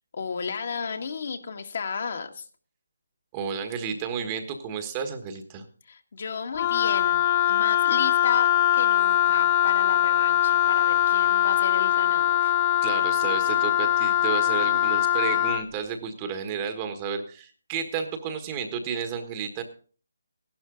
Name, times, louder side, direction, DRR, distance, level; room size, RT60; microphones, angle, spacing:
voice 1, 0.1-2.5 5.9-12.5, left 5 dB, 50° left, 5 dB, 1.9 m, -33 dB
voice 2, 3.3-5.6 12.8-19.6, right 7 dB, 20° right, 7 dB, 1.4 m, -32 dB
Wind instrument woodwind instrument, 6.5-15.6, left 11 dB, 30° left, 0.7 m, -22 dB
15.0 x 11.5 x 3.9 m, 0.41 s
figure-of-eight pair, 160°, 0 cm